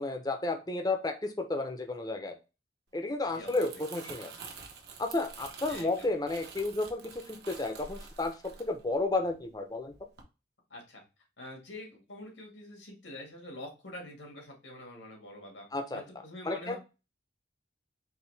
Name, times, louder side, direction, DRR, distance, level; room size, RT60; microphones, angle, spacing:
voice 1, 0.0-2.3 2.9-4.3 5.0-9.9 15.7-16.0 16.4-16.8, left 2 dB, 20° left, 6 dB, 0.6 m, -32 dB
Crumpling crinkling, 3.2-9.6 9.9-10.2, right 5 dB, 65° right, 1.0 m, -48 dB
voice 2, 3.3-3.8 5.7-6.1 10.7-11.0 11.4-15.7 15.9-16.8, left 1 dB, 90° left, 0 dB, 2.0 m, -46 dB
4.6 x 3.1 x 3.3 m, 0.29 s
head